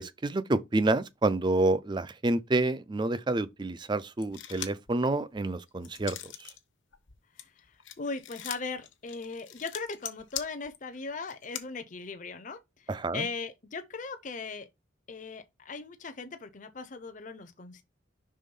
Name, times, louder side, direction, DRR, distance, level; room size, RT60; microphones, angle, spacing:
voice 1, 0.0-6.5 12.9-13.3, right 2 dB, 25° right, 0.4 m, -28 dB
sound 1, 4.2-4.9 5.3-6.6 6.9-11.6, left 11 dB, 70° left, 0.9 m, -41 dB
voice 2, 8.0-14.7 15.1-17.8, left 4 dB, 40° left, 0.7 m, -39 dB
5.6 x 3.6 x 5.3 m
head